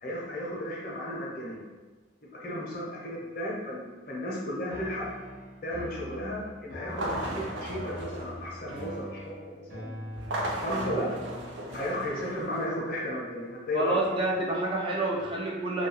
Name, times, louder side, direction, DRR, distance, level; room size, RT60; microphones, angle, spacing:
voice 1, 0.0-1.6 2.3-5.1 5.6-10.1 10.6-11.1 11.7-14.0, equal, 50° left, -4 dB, 0.7 m, -34 dB
sound 1, 4.7-12.7, equal, 55° right, 0.7 m, -43 dB
sound 2, 6.9-9.1 10.1-12.7, right 1 dB, 90° right, 0.5 m, -36 dB
voice 2, 13.7-15.9, right 2 dB, 30° right, -2 dB, 0.4 m, -28 dB
2.8 x 2.3 x 2.8 m, 1.3 s
head